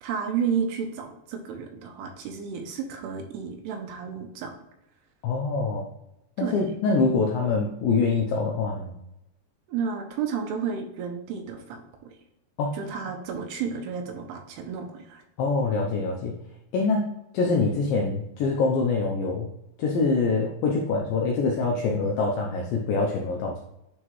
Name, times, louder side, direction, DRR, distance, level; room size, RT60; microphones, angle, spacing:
voice 1, 0.0-4.5 6.4-6.5 9.7-12.2 12.7-15.2, right 6 dB, 80° right, 4 dB, 2.6 m, -32 dB
voice 2, 5.2-5.9 6.4-8.9 12.6-12.8 15.4-16.3 16.7-17.0 17.3-19.5 19.8-23.6, left 4 dB, 85° left, 0 dB, 2.0 m, -25 dB
9.9 x 3.6 x 3.1 m, 0.88 s
omnidirectional pair, 4.9 m